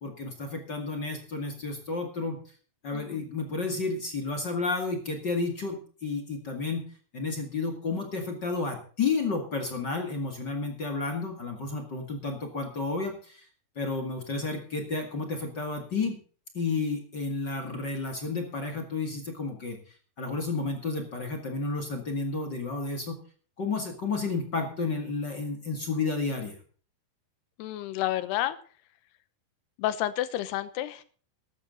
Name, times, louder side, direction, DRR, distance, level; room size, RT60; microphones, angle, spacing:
voice 1, 0.0-2.4 2.8-6.8 7.1-13.5 13.8-16.2 16.5-23.2 23.6-26.6, left 3 dB, 35° left, 4 dB, 1.8 m, -31 dB
voice 2, 2.9-3.3 27.6-28.6 29.8-31.0, left 13 dB, 80° left, 14 dB, 3.0 m, -30 dB
14.0 x 12.5 x 3.9 m, 0.42 s
omnidirectional pair, 4.8 m